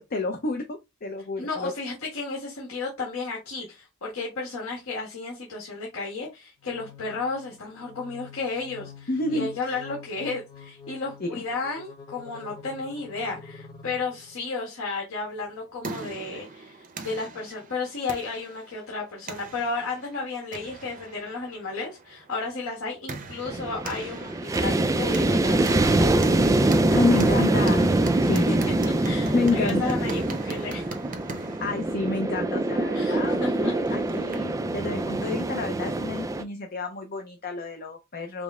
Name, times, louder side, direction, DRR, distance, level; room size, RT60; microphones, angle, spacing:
voice 1, 0.0-1.7 9.1-9.5 11.2-11.4 26.9-27.9 28.2-28.5 29.0-29.9 31.4-38.4, left 3 dB, 45° left, 0.6 m, -29 dB
voice 2, 1.4-24.3 24.6-26.1 26.9-27.4 28.5-28.6 29.0-30.9 32.9-33.7, left 4 dB, 70° left, 1.5 m, -33 dB
sound 1, 6.6-14.5, left 5 dB, 15° left, 1.0 m, -47 dB
sound 2, 15.4-34.6, right 3 dB, 40° right, 0.7 m, -41 dB
sound 3, 23.5-36.4, right 2 dB, 15° right, 0.3 m, -24 dB
5.1 x 2.0 x 3.6 m
head